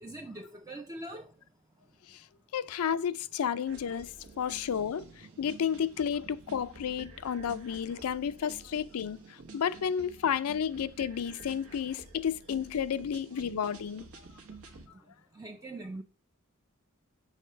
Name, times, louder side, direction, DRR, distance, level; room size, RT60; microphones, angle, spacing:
voice 1, 0.0-1.3 15.3-16.0, right 2 dB, 15° right, 0.4 m, -42 dB
voice 2, 2.5-14.0, left 8 dB, 85° left, 0.4 m, -32 dB
sound 1, 3.7-14.9, right 3 dB, 80° right, 1.3 m, -50 dB
6.5 x 3.3 x 5.4 m
head